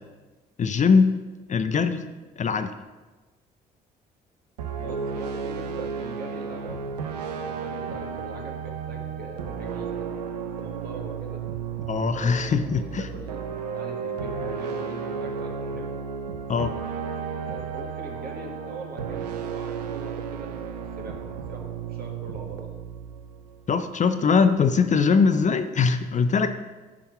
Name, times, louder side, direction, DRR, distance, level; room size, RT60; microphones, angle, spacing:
voice 1, 0.6-1.1 1.5-2.1 2.4-2.7 11.9-13.0 16.5-16.7 23.7-26.5, left 5 dB, 40° left, 9 dB, 0.6 m, -21 dB
sound 1, 4.6-23.8, right 6 dB, 90° right, 0.5 m, -33 dB
voice 2, 4.8-6.9 7.3-10.3 10.6-11.4 11.9-13.4 13.7-15.9 17.4-22.7, right 2 dB, 50° right, 1 dB, 1.8 m, -41 dB
9.6 x 3.6 x 5.8 m, 1.2 s
hypercardioid pair, 50°, 20 cm